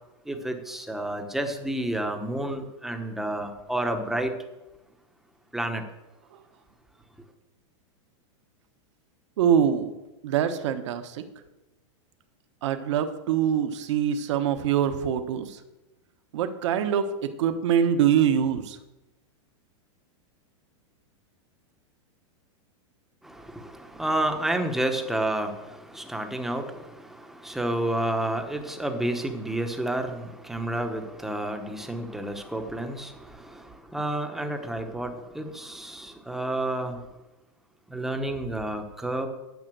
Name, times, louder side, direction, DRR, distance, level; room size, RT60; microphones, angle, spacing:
voice 1, 0.3-4.3 5.5-5.8 23.2-37.1 37.9-39.3, right 1 dB, ahead, 4 dB, 0.9 m, -30 dB
voice 2, 9.4-9.9 10.2-11.2 12.6-15.6 16.3-18.8, right 8 dB, 65° right, 8 dB, 1.2 m, -24 dB
11.0 x 5.7 x 7.7 m, 1.0 s
supercardioid pair, 160°, 16 cm